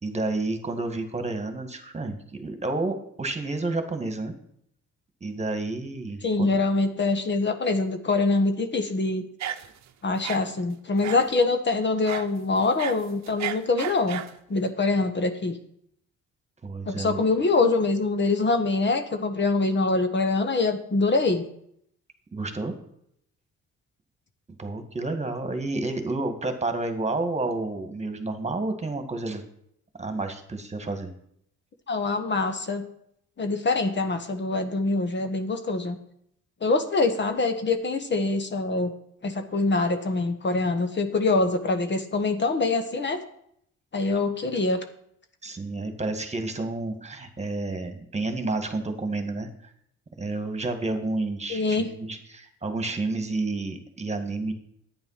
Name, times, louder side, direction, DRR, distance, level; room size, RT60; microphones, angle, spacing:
voice 1, 0.0-4.3 5.2-6.6 16.6-17.2 22.3-22.7 24.6-29.4 30.0-31.1 45.4-49.5 50.2-54.5, right 2 dB, 20° right, 7 dB, 1.9 m, -30 dB
voice 2, 6.2-9.2 10.0-14.2 14.5-15.6 16.8-21.5 31.9-32.9 33.4-36.0 36.6-38.9 39.2-43.2 43.9-44.8 51.5-51.9, left 3 dB, 35° left, 7 dB, 1.2 m, -24 dB
sound 1, 9.4-9.9 10.2-10.4 11.0-11.3 12.1-12.3 12.6-14.4, right 11 dB, 65° right, 0.8 m, -33 dB
10.5 x 9.2 x 5.8 m, 0.71 s
cardioid pair, 90°, 30 cm